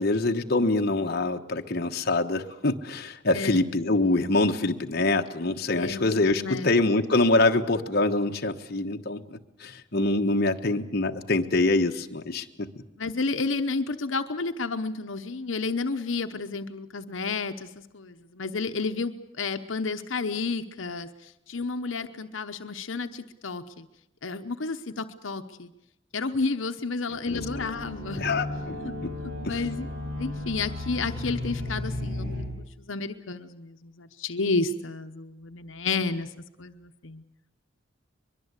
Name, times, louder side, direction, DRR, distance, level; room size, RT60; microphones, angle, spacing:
voice 1, 0.0-12.7 27.3-27.4 28.2-28.8 29.0-29.1 29.4-29.6, left 2 dB, 55° left, 4 dB, 1.3 m, -25 dB
voice 2, 5.7-6.2 6.4-6.7 10.1-10.2 13.0-17.7 17.9-23.9 24.2-25.7 26.1-28.2 28.8-28.9 29.4-29.9 30.2-36.3 36.6-37.2, left 3 dB, 85° left, 7 dB, 1.0 m, -31 dB
sound 1, 27.3-32.5, left 1 dB, 65° right, 6.4 m, -34 dB
23.0 x 22.5 x 8.2 m, 0.86 s
head